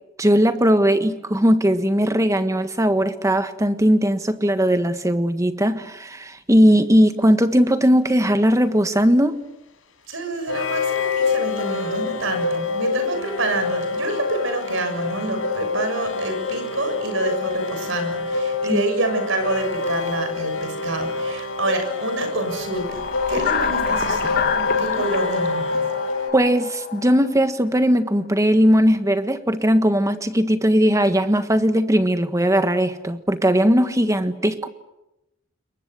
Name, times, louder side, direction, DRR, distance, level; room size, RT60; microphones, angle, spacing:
voice 1, 0.2-9.4 18.7-18.8 26.3-34.7, equal, 15° right, 1.5 m, -18 dB
sound 1, 7.8-7.9 10.5-26.3, left 4 dB, 75° left, 5.7 m, -27 dB
voice 2, 10.1-24.4 24.8-25.8, right 2 dB, 65° right, 7.0 m, -27 dB
sound 2, 22.7-27.3, left 5 dB, 45° left, 1.7 m, -26 dB
28.0 x 23.0 x 8.2 m
head